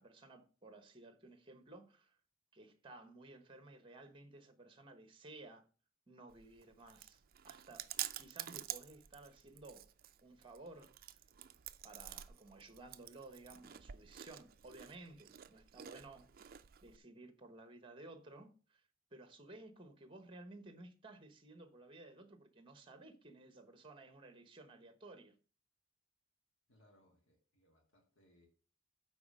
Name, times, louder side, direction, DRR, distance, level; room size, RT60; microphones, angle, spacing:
voice 1, 0.0-2.2 2.5-5.7 6.1-7.9 8.2-9.9 10.2-11.2 11.8-16.5 16.8-18.8 19.1-25.3, right 2 dB, 25° right, 1.2 m, -56 dB
Chewing mastication, 6.3-17.0, right 12 dB, 45° right, 0.4 m, -49 dB
voice 2, 26.7-28.5, left 1 dB, 65° left, 2.2 m, -70 dB
9.7 x 4.1 x 6.3 m
head